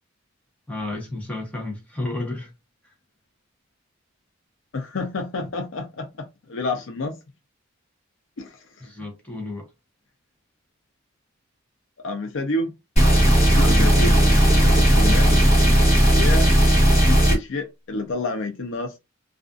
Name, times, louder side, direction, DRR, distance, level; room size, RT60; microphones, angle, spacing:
voice 1, 0.7-2.5 2.8-2.9 8.8-9.7 13.5-14.2 15.0-15.5, left 2 dB, 5° left, 0.8 m, -32 dB
voice 2, 4.7-7.2 8.4-8.6 12.0-12.7 13.6-14.2 14.5-15.4 16.0-19.0, left 2 dB, 60° left, 0.5 m, -30 dB
sound 1, 13.0-17.4, equal, 30° left, 1.0 m, -16 dB
2.4 x 2.4 x 2.4 m
head